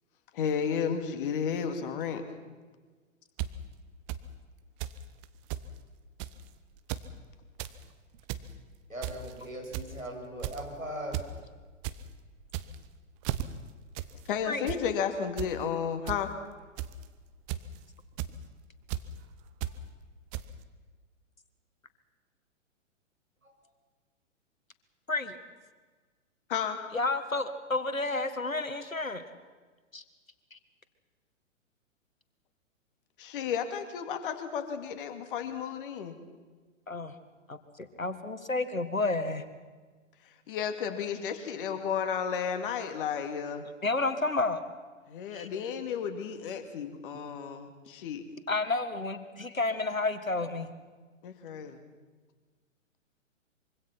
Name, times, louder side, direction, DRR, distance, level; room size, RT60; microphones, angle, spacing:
voice 1, 0.3-2.2 14.3-16.3 26.5-26.8 33.2-36.1 40.5-43.6 45.1-48.2 51.2-51.8, left 7 dB, 40° left, 7 dB, 2.4 m, -33 dB
sound 1, 3.4-3.5 4.1-4.2 4.8-5.0 5.2-5.3 5.5-5.7 6.2-6.4 6.8-7.1 7.4-7.7 8.1-8.5 9.0-9.3 9.7-10.0 10.4-10.7 11.1-11.3 11.6-12.0 12.4-12.9 13.2-13.4 13.9-14.1 14.4-14.8 15.4-15.5 16.1-16.2 16.8-17.0 17.5-17.8 18.2-18.3 18.9-19.0 19.6-19.7 20.3-20.4, right 14 dB, 25° right, 0.8 m, -34 dB
voice 2, 8.9-11.3 19.6-19.7 23.4-23.5, right 1 dB, 90° right, 0 dB, 7.4 m, -39 dB
voice 3, 26.9-29.2 29.9-30.0 30.5-30.6 36.9-37.1 37.5-39.4 43.8-44.6 45.3-45.5 48.5-50.7, left 3 dB, 85° left, 10 dB, 1.9 m, -31 dB
24.5 x 24.5 x 5.9 m, 1.4 s
figure-of-eight pair, 115°, 39 cm